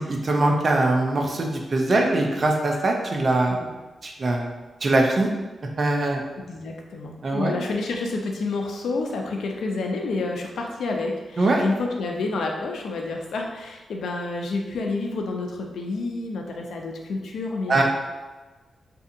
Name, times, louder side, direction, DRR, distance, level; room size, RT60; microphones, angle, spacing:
voice 1, 0.1-3.6 4.0-5.3 5.8-6.2 7.2-7.6 11.4-11.6 17.7-17.8, right 2 dB, 40° right, 1 dB, 0.4 m, -22 dB
voice 2, 6.4-17.8, left 3 dB, 85° left, 1 dB, 0.4 m, -29 dB
2.6 x 2.4 x 2.6 m, 1.2 s
wide cardioid pair, 120°, 0 cm